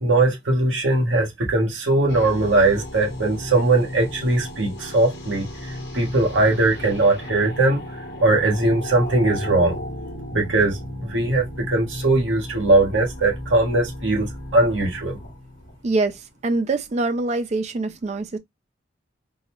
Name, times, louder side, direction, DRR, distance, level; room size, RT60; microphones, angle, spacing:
voice 1, 0.0-9.8 10.3-15.2, right 2 dB, 75° right, 1.1 m, -20 dB
sound 1, 2.1-16.2, left 1 dB, 55° left, 1.0 m, -34 dB
voice 2, 15.8-18.4, right 3 dB, 35° right, 0.4 m, -24 dB
3.8 x 2.0 x 2.9 m
head